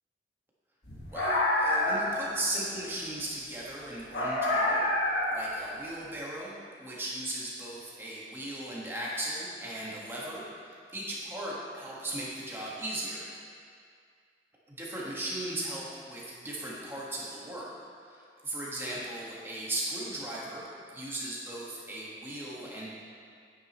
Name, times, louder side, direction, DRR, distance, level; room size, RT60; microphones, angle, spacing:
sound 1, 0.8-2.2 4.1-5.5, left 1 dB, 70° left, 1.7 m, -27 dB
voice 1, 1.1-4.9 5.3-13.2 14.7-17.7 18.1-20.7 20.9-22.9, right 1 dB, 15° right, -6 dB, 1.6 m, -37 dB
10.5 x 9.3 x 3.1 m, 2.2 s
head